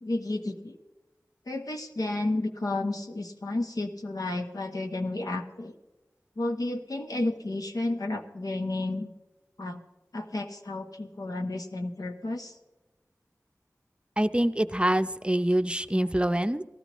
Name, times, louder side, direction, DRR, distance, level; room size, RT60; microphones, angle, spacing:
voice 1, 0.0-0.8 1.5-5.7 6.4-9.1 9.6-9.8 10.1-12.5, left 2 dB, 90° left, 4 dB, 1.1 m, -32 dB
voice 2, 14.2-16.6, right 1 dB, 15° right, 9 dB, 0.6 m, -25 dB
18.0 x 14.5 x 3.1 m, 1.1 s
wide cardioid pair, 55°, 6 cm